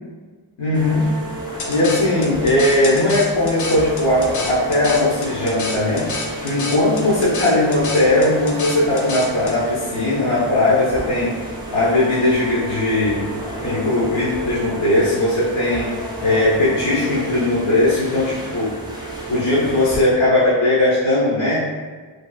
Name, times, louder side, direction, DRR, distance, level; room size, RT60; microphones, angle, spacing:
voice 1, 0.6-1.1 1.7-6.1 6.4-11.3 11.7-13.3 13.6-15.9 16.2-18.7 19.3-21.6, left 1 dB, 70° left, -11 dB, 1.0 m, -18 dB
sound 1, 0.7-20.0, equal, 10° right, 0.5 m, -31 dB
sound 2, 1.6-9.6, left 2 dB, 40° left, 0.4 m, -29 dB
2.9 x 2.5 x 2.2 m, 1.4 s
cardioid pair, 75°, 47 cm